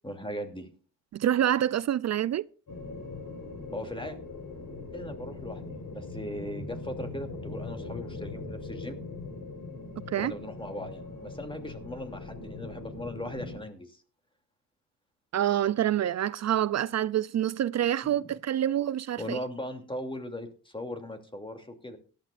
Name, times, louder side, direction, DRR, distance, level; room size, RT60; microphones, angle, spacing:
voice 1, 0.0-0.7 3.7-4.2 4.9-9.0 10.2-14.0 18.0-18.2 19.2-22.0, left 1 dB, 15° left, 2.8 m, -38 dB
voice 2, 1.1-2.4 10.1-10.3 15.3-19.4, right 11 dB, 50° right, 0.4 m, -27 dB
sound 1, 2.7-13.6, left 3 dB, 70° left, 3.9 m, -41 dB
17.5 x 12.0 x 2.5 m
cardioid pair, 65°, 35 cm